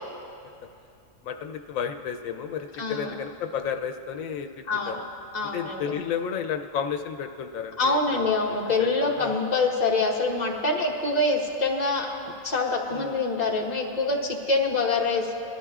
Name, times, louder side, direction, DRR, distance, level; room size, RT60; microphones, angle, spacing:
voice 1, 1.2-5.0 5.5-9.3 12.9-13.2, left 7 dB, 90° left, 5 dB, 1.0 m, -32 dB
voice 2, 2.8-3.1 4.7-5.0 5.3-5.9 7.8-12.1 12.4-15.3, left 3 dB, 35° left, -1 dB, 1.3 m, -25 dB
22.0 x 13.0 x 2.4 m, 2.6 s
omnidirectional pair, 1.4 m